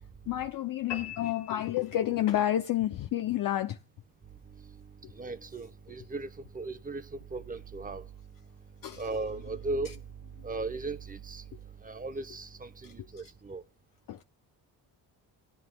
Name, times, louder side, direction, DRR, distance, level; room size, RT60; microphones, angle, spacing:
voice 1, 0.3-3.8 8.8-9.0 14.1-14.2, left 12 dB, 50° left, 0.5 m, -29 dB
sound 1, 0.9-2.4, left 9 dB, 90° left, 1.7 m, -42 dB
voice 2, 5.1-8.0 9.0-9.9 10.4-11.4 11.8-13.6, right 3 dB, 20° right, 0.8 m, -37 dB
17.0 x 9.5 x 2.2 m
cardioid pair, 80°, 43 cm